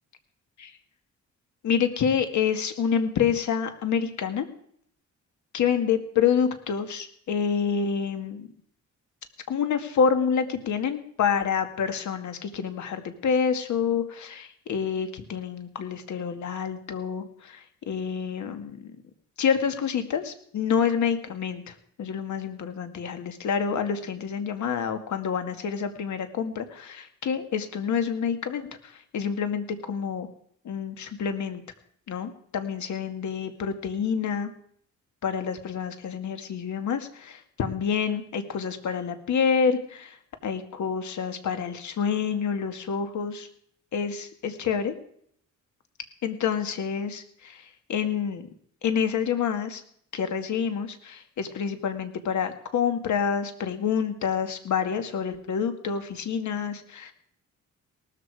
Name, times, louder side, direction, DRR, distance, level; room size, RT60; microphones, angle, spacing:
voice 1, 1.6-4.5 5.5-8.5 9.5-18.9 19.4-30.3 30.6-31.6 32.1-34.5 35.2-43.5 43.9-44.9 46.2-48.5 48.8-49.8 50.1-57.1, left 7 dB, 70° left, 8 dB, 2.0 m, -28 dB
18.5 x 13.5 x 4.8 m, 0.65 s
cardioid pair, 120°, 30 cm